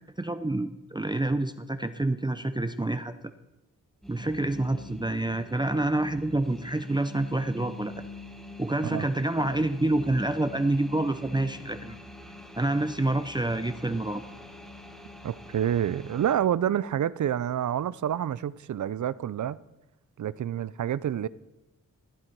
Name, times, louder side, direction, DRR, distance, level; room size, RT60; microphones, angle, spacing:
voice 1, 0.2-3.1 4.1-8.0 8.6-12.0 12.6-14.2, right 2 dB, 15° right, 0.5 m, -27 dB
sound 1, 4.0-16.3, left 1 dB, ahead, 1.7 m, -45 dB
voice 2, 15.2-19.6 20.2-21.3, right 10 dB, 65° right, 0.5 m, -28 dB
15.0 x 9.0 x 4.6 m
wide cardioid pair, 100°, 32 cm